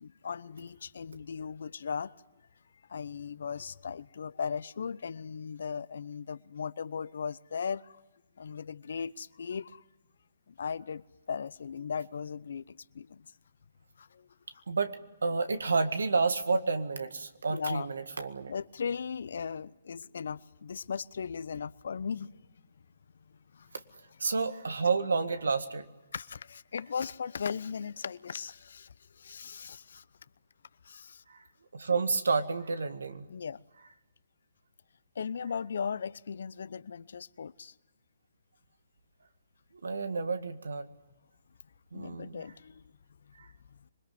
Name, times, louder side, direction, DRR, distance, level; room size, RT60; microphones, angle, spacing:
voice 1, 0.0-2.1 2.9-8.0 8.4-9.8 10.5-11.0 11.3-13.3 14.0-14.3 17.5-17.9 18.5-22.4 23.5-23.7 26.1-30.0 30.8-31.2 33.3-33.6 35.1-37.7 41.9-42.8 43.7-43.8, left 6 dB, 65° left, 0.8 m, -37 dB
voice 2, 15.2-18.5 24.2-25.9 31.3-31.4 31.7-33.3 39.8-40.9 41.9-42.4 43.4-43.5, right 4 dB, 80° right, 1.9 m, -30 dB
26.5 x 21.5 x 9.5 m
hypercardioid pair, 140°, 0 cm